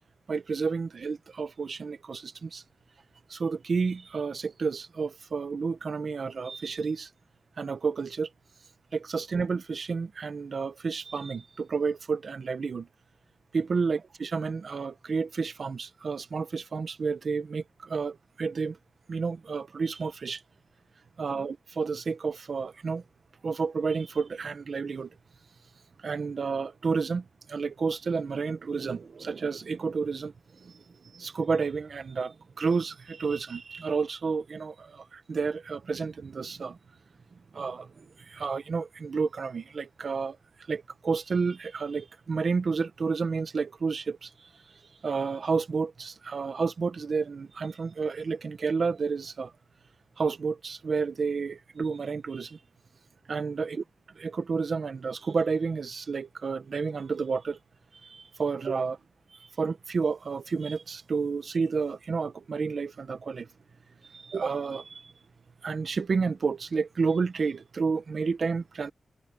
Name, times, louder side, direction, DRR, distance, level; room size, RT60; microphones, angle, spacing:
voice 1, 0.3-2.6 3.3-7.1 7.6-8.3 8.9-12.9 13.5-18.8 19.1-20.4 21.2-23.0 23.4-25.1 26.0-30.3 30.6-30.8 31.1-36.8 37.5-40.4 40.7-44.3 45.0-49.5 50.2-52.6 53.3-53.8 54.1-57.6 58.0-59.0 59.4-63.5 64.1-65.1 65.6-68.9, right 5 dB, 55° right, 1.3 m, -30 dB
wide cardioid pair, 140°, 0 cm